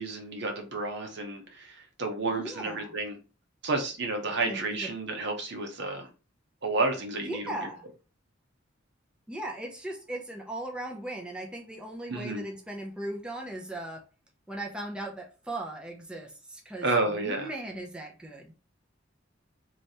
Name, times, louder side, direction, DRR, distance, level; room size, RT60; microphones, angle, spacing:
voice 1, 0.0-3.2 3.6-6.1 6.6-7.7 12.1-12.5 16.8-17.5, right 3 dB, 60° right, 1.1 m, -31 dB
voice 2, 2.3-2.9 4.4-4.9 7.3-7.8 9.3-14.0 14.5-16.9 17.1-18.5, right 1 dB, 5° right, 0.6 m, -38 dB
3.3 x 3.0 x 4.1 m
head